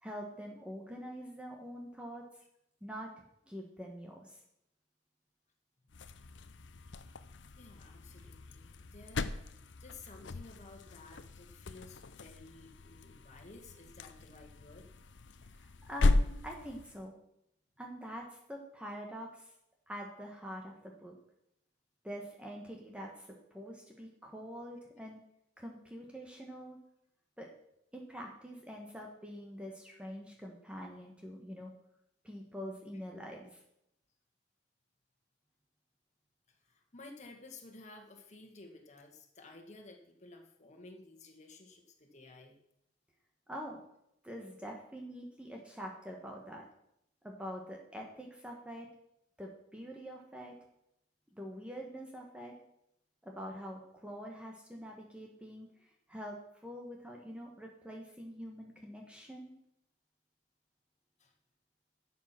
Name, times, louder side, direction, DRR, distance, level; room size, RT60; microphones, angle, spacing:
voice 1, 0.0-2.2 2.8-4.4 15.5-17.2 17.8-19.5 19.9-21.2 22.0-25.2 25.6-26.8 27.4-27.5 27.9-31.7 32.2-33.6 43.5-43.8 44.2-46.6 47.2-48.9 49.4-50.5 51.3-52.5 53.2-59.5, equal, 5° right, 0 dB, 1.5 m, -45 dB
sound 1, 5.9-17.0, left 2 dB, 90° left, 0.7 m, -37 dB
voice 2, 7.5-9.3 9.8-14.9 36.5-42.6 61.2-61.3, left 3 dB, 40° left, 3 dB, 1.9 m, -54 dB
12.0 x 7.6 x 6.0 m, 0.78 s
head